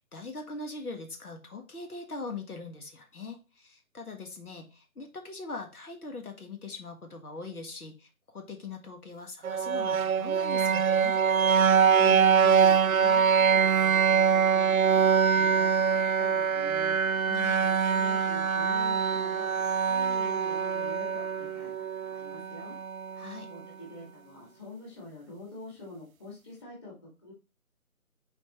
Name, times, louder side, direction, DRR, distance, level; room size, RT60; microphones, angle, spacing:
voice 1, 0.1-11.2 17.3-17.6 23.1-23.5, left 3 dB, 80° left, 4 dB, 1.6 m, -41 dB
sound 1, 9.4-23.4, right 6 dB, 70° right, 0.6 m, -24 dB
voice 2, 12.0-15.9 16.2-17.0 17.6-19.5 19.9-22.8 23.5-27.3, left 2 dB, 20° left, -4 dB, 2.3 m, -45 dB
7.1 x 4.3 x 3.0 m, 0.30 s
figure-of-eight pair, 160°, 43 cm